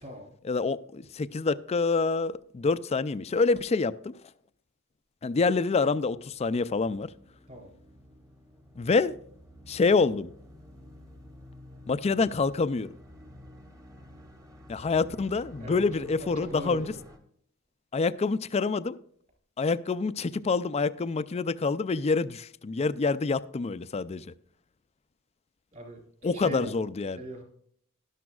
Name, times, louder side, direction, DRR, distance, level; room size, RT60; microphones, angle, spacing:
voice 1, 0.5-4.2 5.2-7.1 8.8-9.1 9.7-10.3 11.9-12.9 14.7-16.9 17.9-19.0 19.6-24.3 26.2-27.2, left 4 dB, 30° left, 0.4 m, -27 dB
sound 1, 6.2-17.2, left 1 dB, 15° right, 1.3 m, -51 dB
voice 2, 15.6-17.0 25.7-26.7 27.1-27.4, right 1 dB, 40° right, 4.0 m, -41 dB
12.0 x 12.0 x 2.4 m
head